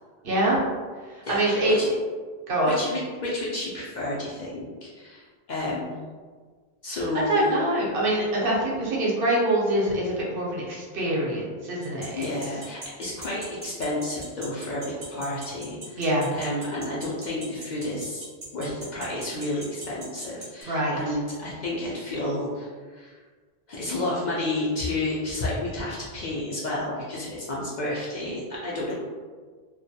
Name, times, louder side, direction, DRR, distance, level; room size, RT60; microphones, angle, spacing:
voice 1, 0.2-0.6 1.3-1.8 2.5-2.7 6.9-7.0 7.3-12.3 16.0-16.3 20.6-21.0, right 1 dB, 65° right, -4 dB, 0.8 m, -24 dB
voice 2, 1.2-1.9 2.7-6.1 6.8-7.5 12.1-16.1 16.3-18.3 18.5-23.2 23.7-28.9, left 1 dB, 55° left, -5 dB, 0.5 m, -31 dB
sound 1, 11.8-20.6, right 3 dB, 40° right, 0.6 m, -39 dB
2.2 x 2.2 x 2.7 m, 1.5 s
omnidirectional pair, 1.0 m